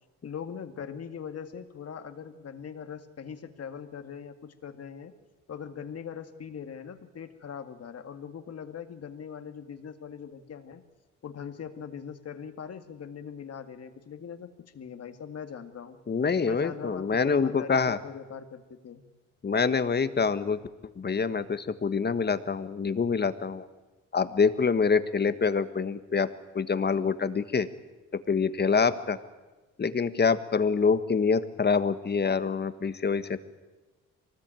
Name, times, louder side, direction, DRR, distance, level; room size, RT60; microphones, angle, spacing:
voice 1, 0.2-5.1 5.5-10.8 11.2-16.0 16.4-19.0, left 7 dB, 55° left, 8 dB, 2.2 m, -41 dB
voice 2, 16.1-18.0 19.4-20.6 21.0-23.7 24.1-26.3 26.5-27.7 28.3-29.2 29.8-33.4, left 5 dB, 35° left, 12 dB, 1.4 m, -26 dB
23.5 x 19.0 x 9.1 m, 1.2 s
cardioid pair, 90°, 30 cm